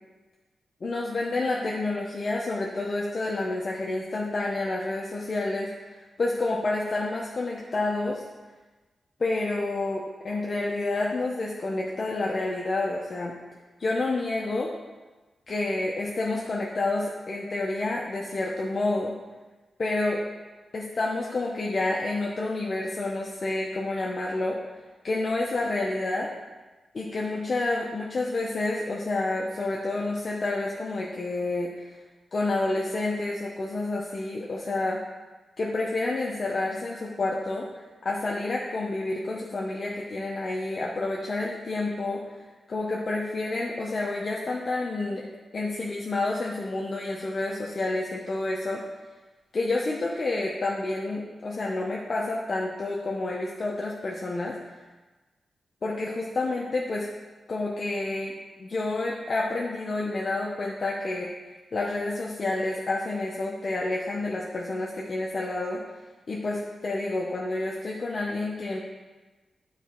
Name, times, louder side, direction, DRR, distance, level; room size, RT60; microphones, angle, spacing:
voice 1, 0.8-5.7 6.2-8.2 9.2-13.4 13.8-14.7 15.5-19.1 19.8-20.2 20.7-24.6 25.0-26.3 26.9-31.9 32.3-35.0 35.6-42.2 42.7-45.2 45.5-48.8 49.5-54.6 55.8-57.1 57.5-61.3 61.7-65.8 66.3-68.8, left 2 dB, 40° left, -3 dB, 0.8 m, -29 dB
9.8 x 4.1 x 4.4 m, 1.2 s
wide cardioid pair, 120°, 0 cm